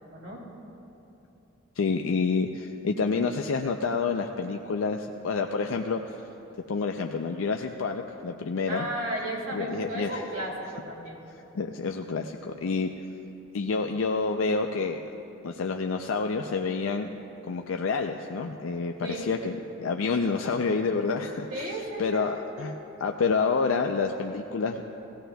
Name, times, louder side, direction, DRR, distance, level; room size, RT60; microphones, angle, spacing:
voice 1, 0.1-0.4 8.7-11.2 19.0-19.3 21.5-22.2 22.6-22.8, right 1 dB, 85° right, -3 dB, 2.4 m, -34 dB
voice 2, 1.8-6.0 6.7-8.8 9.5-10.2 11.5-12.9 13.5-15.0 15.4-17.1 17.4-21.7 22.0-24.8, left 4 dB, 85° left, 4 dB, 0.5 m, -28 dB
18.0 x 16.0 x 2.3 m, 3.0 s
head